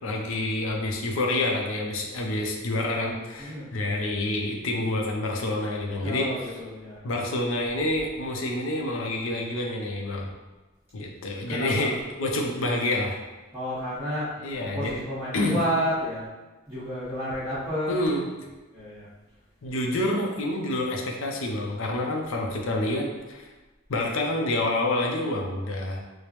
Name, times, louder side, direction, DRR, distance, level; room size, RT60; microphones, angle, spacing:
voice 1, 0.0-6.5 7.0-10.3 10.9-13.2 14.4-14.9 15.3-15.6 17.9-18.3 19.6-23.5 23.9-26.0, left 1 dB, 75° left, 0 dB, 0.5 m, -28 dB
voice 2, 6.0-7.0 11.5-11.9 13.5-14.3 14.6-16.3 16.7-17.9 18.7-19.1, equal, 10° right, -14 dB, 1.3 m, -30 dB
4.9 x 2.1 x 3.0 m, 1.2 s
head